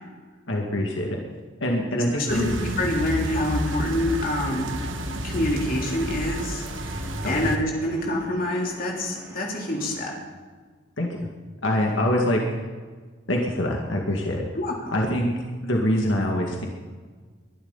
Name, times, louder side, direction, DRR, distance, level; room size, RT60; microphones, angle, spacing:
voice 1, 0.5-1.2 1.6-2.8 7.2-7.5 11.0-11.1 11.6-12.4 13.3-14.4 14.9-15.3 15.6-16.7, left 1 dB, 80° left, 0 dB, 2.1 m, -24 dB
voice 2, 1.9-4.7 5.2-10.1 14.6-14.9, left 1 dB, 45° left, -1 dB, 3.5 m, -27 dB
sound 1, 2.3-7.6, equal, 85° right, 1.6 m, -31 dB
sound 2, 2.8-10.2, equal, 15° right, 3.1 m, -43 dB
22.5 x 11.5 x 4.1 m, 1.5 s
head